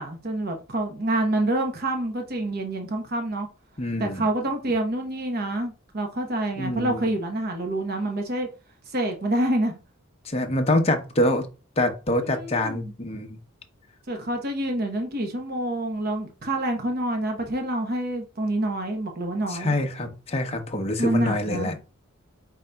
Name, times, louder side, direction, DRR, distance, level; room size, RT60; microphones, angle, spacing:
voice 1, 0.0-3.5 4.0-8.5 8.9-9.8 12.2-12.9 14.1-19.7 21.0-21.7, right 1 dB, 45° right, 0.8 m, -27 dB
voice 2, 3.8-4.3 6.6-7.1 10.2-11.5 11.8-13.4 19.5-21.7, left 1 dB, 30° left, 0.7 m, -25 dB
5.2 x 3.8 x 2.2 m
head